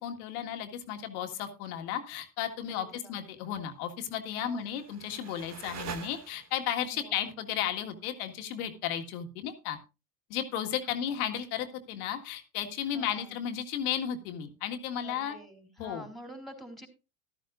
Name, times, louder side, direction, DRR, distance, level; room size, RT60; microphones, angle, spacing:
voice 1, 0.0-9.8 10.3-15.4 15.8-16.1, left 9 dB, 70° left, 5 dB, 1.9 m, -34 dB
voice 2, 2.7-3.2 4.4-4.6 6.9-7.2 10.9-11.2 12.9-13.4 15.0-16.9, right 1 dB, ahead, 6 dB, 3.8 m, -48 dB
sound 1, 4.4-6.8, right 6 dB, 35° right, 1.6 m, -44 dB
14.0 x 13.0 x 2.5 m, 0.28 s
hypercardioid pair, 75°, 45 cm